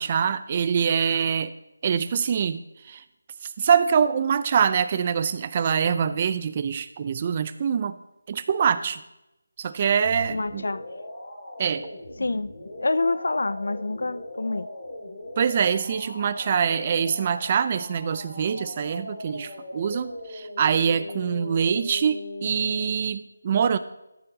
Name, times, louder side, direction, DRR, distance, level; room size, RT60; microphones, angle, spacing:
voice 1, 0.0-1.5 1.8-3.0 3.4-8.0 8.3-9.0 9.6-10.7 11.6-11.9 15.4-23.8, right 7 dB, 25° right, 0.4 m, -24 dB
sound 1, 10.0-22.9, left 2 dB, 35° left, 2.8 m, -39 dB
voice 2, 10.3-10.8 12.2-12.5 12.8-14.7, left 2 dB, 70° left, 0.5 m, -26 dB
13.5 x 7.7 x 3.9 m
figure-of-eight pair, 175°, 0 cm